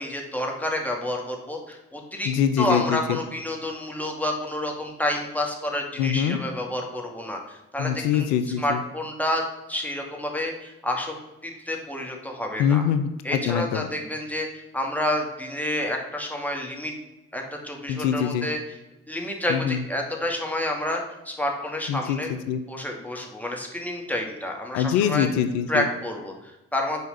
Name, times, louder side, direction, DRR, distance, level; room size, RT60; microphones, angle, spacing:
voice 1, 0.0-2.3 2.6-8.3 8.6-9.4 9.7-11.1 11.4-12.8 13.2-16.9 17.3-18.6 19.1-22.4 22.7-25.3 25.7-27.0, left 1 dB, 5° left, 1 dB, 2.4 m, -29 dB
voice 2, 2.2-3.2 6.0-6.4 7.8-8.8 12.6-13.9 17.9-18.5 19.5-19.8 21.9-22.6 24.7-25.9, left 8 dB, 85° left, 10 dB, 0.5 m, -24 dB
6.6 x 4.7 x 6.8 m, 0.96 s
hypercardioid pair, 40°, 35 cm